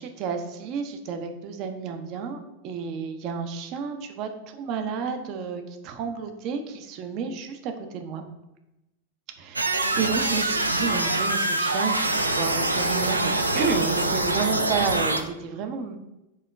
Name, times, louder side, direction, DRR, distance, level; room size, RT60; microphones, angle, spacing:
voice 1, 0.0-8.2 9.4-16.0, right 5 dB, 40° right, 6 dB, 0.6 m, -31 dB
sound 1, 9.6-15.2, right 2 dB, 85° right, 0.3 m, -24 dB
4.6 x 2.9 x 3.4 m, 0.94 s
figure-of-eight pair, 90°, 0 cm